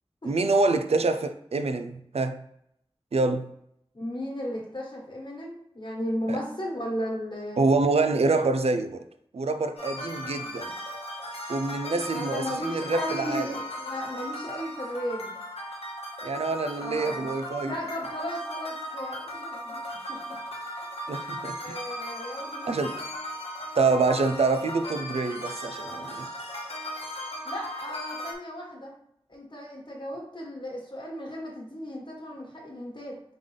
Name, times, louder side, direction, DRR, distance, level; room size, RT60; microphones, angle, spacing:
voice 1, 0.2-2.4 3.1-3.5 6.3-6.4 7.6-9.1 9.3-10.7 11.5-13.5 16.2-17.7 21.1-21.8 22.7-23.0 23.7-26.3, right 3 dB, 80° right, 0.4 m, -26 dB
voice 2, 3.9-7.7 12.1-15.4 16.8-17.3 17.6-20.4 21.6-23.0 27.4-28.9 29.3-33.2, equal, 50° left, 1.4 m, -35 dB
sound 1, 9.8-28.3, equal, 70° left, 0.9 m, -37 dB
3.9 x 3.6 x 3.3 m
wide cardioid pair, 45°, 10 cm